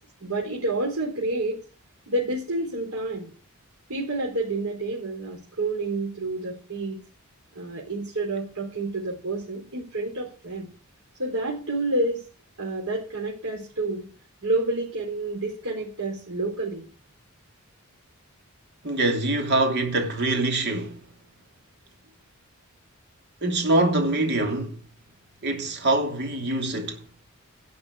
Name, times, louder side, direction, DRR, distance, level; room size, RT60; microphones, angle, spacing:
voice 1, 0.2-1.6 2.1-3.3 3.9-7.0 7.6-10.7 11.2-12.2 12.6-14.1 14.4-16.9, right 2 dB, 90° right, 3.9 m, -29 dB
voice 2, 18.8-21.0 23.4-24.8 25.4-27.0, right 2 dB, 50° right, 2.8 m, -24 dB
11.5 x 5.5 x 8.4 m
head